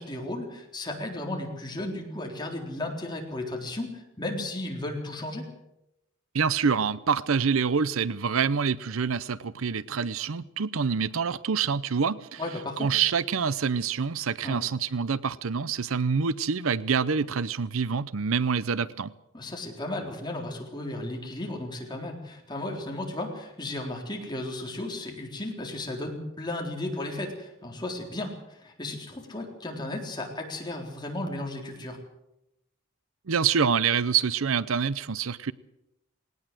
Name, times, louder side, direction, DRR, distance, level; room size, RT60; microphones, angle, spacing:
voice 1, 0.0-5.5 12.4-12.9 14.4-14.6 19.3-32.0, left 1 dB, 20° left, 3.9 m, -34 dB
voice 2, 6.3-12.4 12.8-19.1 33.3-35.5, right 6 dB, 75° right, 0.7 m, -26 dB
19.0 x 19.0 x 7.7 m
head